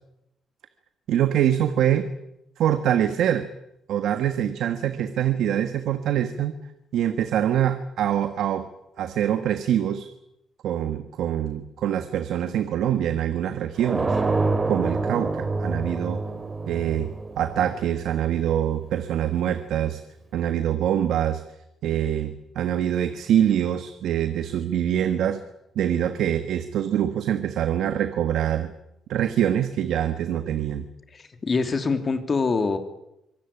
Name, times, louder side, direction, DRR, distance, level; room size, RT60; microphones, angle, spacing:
voice 1, 1.1-2.1 2.6-3.5 3.9-6.5 6.9-8.7 9.0-10.1 10.6-14.2 14.7-16.2 16.7-17.1 17.4-20.0 20.3-21.4 21.8-25.4 25.7-28.7 29.1-30.8, right 10 dB, 75° right, 10 dB, 1.4 m, -24 dB
sound 1, 13.8-18.5, right 3 dB, 30° right, 2.7 m, -27 dB
voice 2, 31.1-32.8, left 4 dB, 40° left, 7 dB, 2.8 m, -24 dB
24.5 x 17.0 x 9.9 m, 0.86 s
cardioid pair, 90°, 0 cm